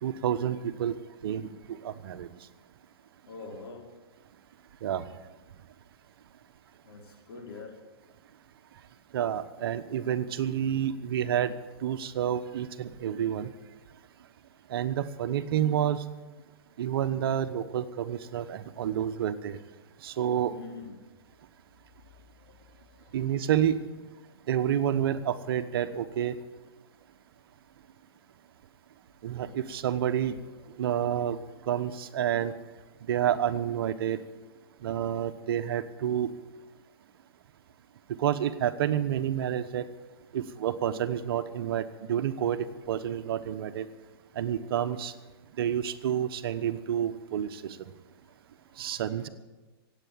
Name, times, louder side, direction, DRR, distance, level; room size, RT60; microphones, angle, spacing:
voice 1, 0.0-0.9 1.2-1.5 1.8-2.3 4.8-5.0 9.1-11.5 11.8-13.5 14.7-16.0 16.8-19.6 20.0-20.5 23.1-23.8 24.5-26.3 29.2-30.4 30.8-31.4 31.7-32.5 33.1-34.2 34.8-36.3 38.2-39.8 40.3-42.6 42.9-43.9 44.4-45.1 45.6-47.8 48.8-49.3, right 10 dB, 65° right, 11 dB, 1.1 m, -29 dB
voice 2, 3.3-3.8 6.8-7.7 20.5-20.9 22.9-23.0, left 4 dB, 75° left, -1 dB, 4.8 m, -43 dB
17.0 x 8.4 x 8.6 m, 1.2 s
hypercardioid pair, 125°, 13 cm